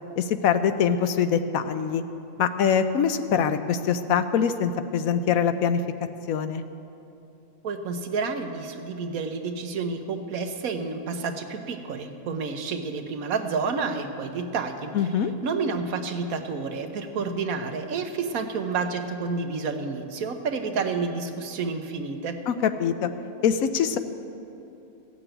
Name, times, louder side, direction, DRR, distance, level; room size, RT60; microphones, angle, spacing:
voice 1, 0.2-2.0 2.4-5.8 6.3-6.6 14.9-15.3 22.5-23.1 23.4-24.0, left 7 dB, 80° left, 10 dB, 1.1 m, -23 dB
voice 2, 7.6-14.9 15.4-22.4, right 4 dB, 80° right, 6 dB, 1.4 m, -30 dB
15.0 x 6.9 x 9.0 m, 2.8 s
omnidirectional pair, 1.5 m